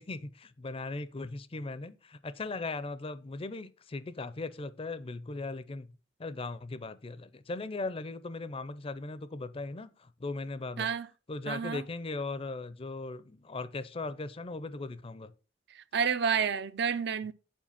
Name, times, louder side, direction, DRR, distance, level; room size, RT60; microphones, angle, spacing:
voice 1, 0.0-5.9 6.2-10.9 11.3-15.3, left 3 dB, 30° left, 0.5 m, -38 dB
voice 2, 11.5-11.8 15.7-17.3, right 6 dB, 60° right, 0.5 m, -30 dB
7.4 x 4.8 x 5.7 m
head